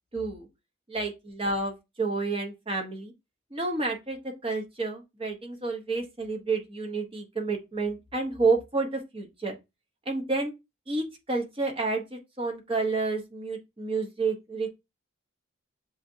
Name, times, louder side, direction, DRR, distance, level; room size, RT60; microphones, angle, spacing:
voice 1, 0.1-0.5 0.9-3.1 3.5-9.6 10.1-10.5 10.9-14.7, right 3 dB, 25° right, 0.9 m, -30 dB
7.2 x 2.6 x 2.7 m
head